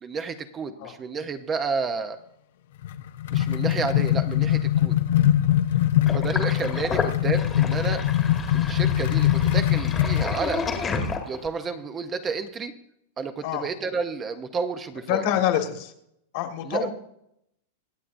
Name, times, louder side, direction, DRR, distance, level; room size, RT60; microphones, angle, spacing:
voice 1, 0.0-2.2 3.3-4.9 6.1-8.0 8.5-10.6 11.3-12.7 13.2-15.2 16.6-16.9, right 5 dB, 20° right, 8 dB, 0.7 m, -31 dB
sound 1, 2.8-10.4, left 12 dB, 70° left, 0.8 m, -22 dB
Sink (filling or washing), 6.1-11.6, left 4 dB, 15° left, 1.3 m, -30 dB
voice 2, 15.1-15.9 16.3-16.9, left 11 dB, 50° left, 5 dB, 1.7 m, -26 dB
24.0 x 8.3 x 2.6 m, 0.75 s
supercardioid pair, 155°, 0 cm